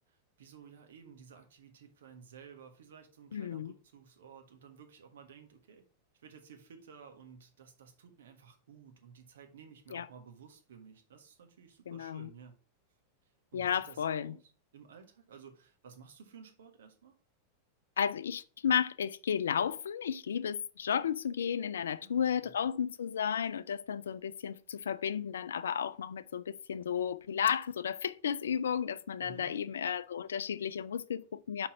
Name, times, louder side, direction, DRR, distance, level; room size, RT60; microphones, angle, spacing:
voice 1, 0.1-5.8 6.2-12.5 13.5-17.1 22.0-22.5 29.2-29.6, right 6 dB, 60° right, 1.4 m, -54 dB
voice 2, 3.3-3.7 9.9-10.1 11.9-12.3 13.5-14.3 18.0-31.7, left 8 dB, 65° left, 0.4 m, -33 dB
5.7 x 4.8 x 5.7 m
figure-of-eight pair, 90°, 0 cm